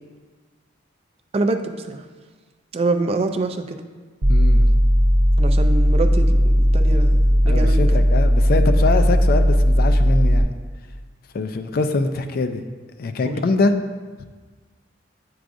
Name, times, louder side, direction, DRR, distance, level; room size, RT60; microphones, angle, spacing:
voice 1, 1.3-2.1 2.7-3.8 5.4-8.0 13.2-13.4, right 3 dB, 30° right, 6 dB, 0.3 m, -25 dB
sound 1, 4.2-10.4, equal, 75° right, 0.7 m, -16 dB
voice 2, 4.3-4.7 7.5-10.5 11.3-12.6 13.0-13.7, left 3 dB, 50° left, 8 dB, 0.4 m, -23 dB
9.1 x 4.7 x 2.5 m, 1.4 s
head